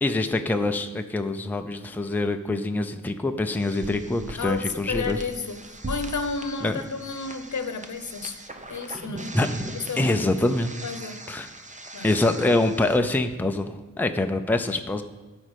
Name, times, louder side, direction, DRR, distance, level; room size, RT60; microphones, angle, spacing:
voice 1, 0.0-5.2 6.6-6.7 9.3-9.5 10.0-10.7 11.3-11.5 12.0-15.0, left 2 dB, 5° left, 6 dB, 0.5 m, -25 dB
sound 1, 3.6-13.0, right 1 dB, 25° right, 0.8 m, -39 dB
voice 2, 4.4-8.4 8.7-9.4 9.7-10.3 10.8-11.2 11.9-12.1, left 4 dB, 65° left, 9 dB, 0.9 m, -32 dB
11.5 x 4.3 x 8.0 m, 1.2 s
wide cardioid pair, 120°, 31 cm